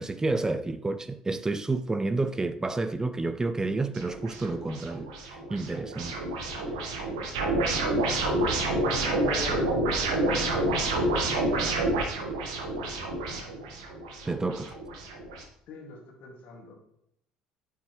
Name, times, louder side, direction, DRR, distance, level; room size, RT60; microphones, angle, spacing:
voice 1, 0.0-6.2 14.2-14.8, right 3 dB, 20° right, 0.6 m, -30 dB
sound 1, 3.9-15.4, right 2 dB, 80° right, 1.5 m, -29 dB
voice 2, 8.8-10.8 15.7-16.8, left 2 dB, 60° left, 2.2 m, -41 dB
9.1 x 7.2 x 3.2 m
hypercardioid pair, 60°, 3 cm